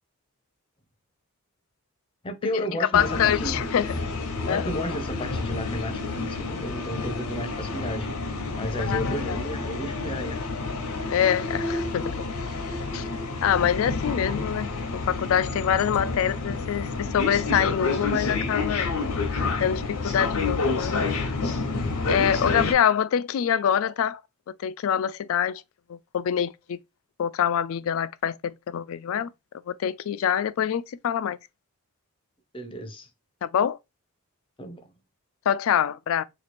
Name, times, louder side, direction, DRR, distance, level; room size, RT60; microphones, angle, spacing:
voice 1, 2.2-3.7 4.5-8.1 8.6-10.5 32.5-33.1 34.6-34.9, equal, 25° left, 0.6 m, -33 dB
sound 1, 2.9-22.7, left 3 dB, 85° left, 0.8 m, -29 dB
voice 2, 2.9-3.9 4.5-4.7 8.8-9.4 11.1-12.2 12.9-13.0 13.4-18.9 19.6-21.1 22.1-24.2 24.6-25.6 25.9-26.8 27.2-29.3 29.7-31.4 33.4-33.8 35.5-36.2, left 9 dB, 65° left, 0.3 m, -25 dB
3.0 x 2.4 x 4.1 m
head